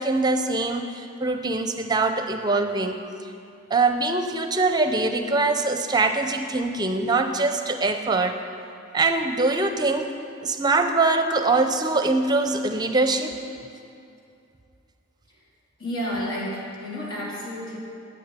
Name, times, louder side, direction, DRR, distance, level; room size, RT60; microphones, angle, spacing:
voice 1, 0.0-3.0 3.7-8.4 8.9-10.1 10.4-13.4, right 3 dB, 20° right, 6 dB, 0.6 m, -23 dB
voice 2, 15.8-17.8, equal, 75° left, -5 dB, 3.6 m, -31 dB
10.0 x 8.6 x 9.6 m, 2.6 s
head